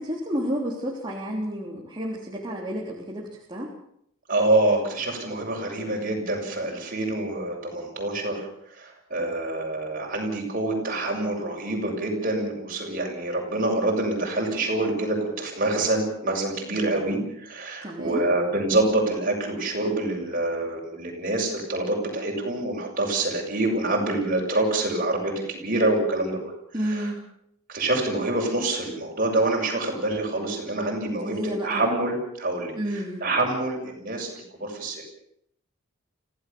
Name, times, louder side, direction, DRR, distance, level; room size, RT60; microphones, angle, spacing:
voice 1, 0.0-3.7 16.9-17.1 17.8-18.2 26.7-27.2 31.2-31.8 32.7-33.2, equal, 20° right, -4 dB, 3.4 m, -31 dB
voice 2, 4.3-8.5 8.8-26.4 26.8-27.1 27.7-32.7 33.2-34.3 34.6-35.0, right 2 dB, 40° right, 0 dB, 7.0 m, -26 dB
25.5 x 16.5 x 7.0 m, 0.71 s
head